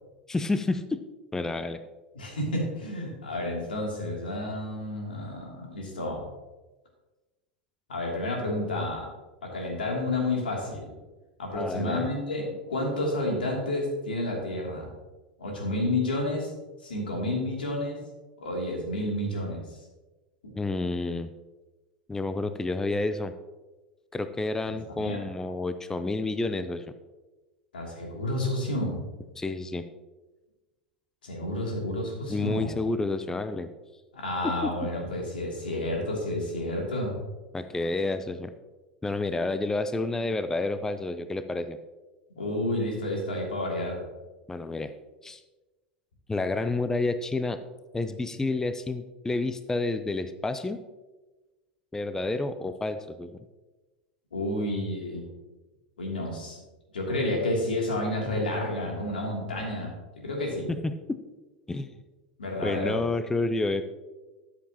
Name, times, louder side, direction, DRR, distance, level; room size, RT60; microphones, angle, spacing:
voice 1, 0.3-1.0 1.3-1.8 11.5-12.1 20.6-21.3 22.1-23.3 24.1-26.8 29.4-29.8 32.3-33.7 34.4-34.7 35.1-35.2 37.5-38.5 39.0-41.8 44.5-44.9 45.2-45.4 46.3-47.6 47.9-50.8 51.9-53.3 60.7-61.2 61.7-62.0 62.6-63.8, left 2 dB, 10° left, 10 dB, 0.5 m, -29 dB
voice 2, 2.1-6.2 7.9-9.1 9.4-11.0 11.4-14.9 15.4-16.5 16.8-18.0 18.4-19.6 24.9-25.3 27.7-29.0 31.2-32.7 34.1-37.1 42.3-44.0 54.3-55.3 56.0-56.6 56.9-59.9 60.2-60.7 62.4-63.0, left 1 dB, 80° left, -1 dB, 2.8 m, -30 dB
13.0 x 7.5 x 2.9 m, 1.2 s
hypercardioid pair, 85°, 5 cm